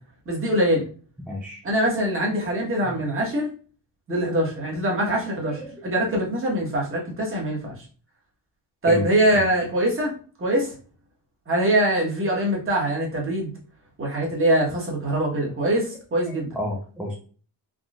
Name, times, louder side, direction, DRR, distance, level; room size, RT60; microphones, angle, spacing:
voice 1, 0.3-0.9 1.6-3.5 4.1-7.7 8.8-10.1 10.4-10.7 11.5-13.5 14.0-16.5, right 1 dB, 25° right, -2 dB, 1.2 m, -23 dB
voice 2, 1.3-1.6 2.8-2.9 5.5-5.7 8.9-9.1 9.3-9.4 16.3-17.2, left 1 dB, 5° right, -3 dB, 0.4 m, -31 dB
3.7 x 2.4 x 2.4 m, 0.40 s
cardioid pair, 120°, 46 cm